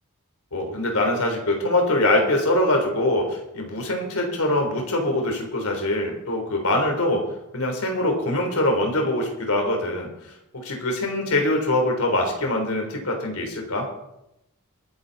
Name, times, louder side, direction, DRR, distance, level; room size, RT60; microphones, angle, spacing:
voice 1, 0.5-7.2 7.5-10.1 10.5-13.9, left 1 dB, 90° left, 2 dB, 3.8 m, -23 dB
23.0 x 9.1 x 4.2 m, 0.87 s
head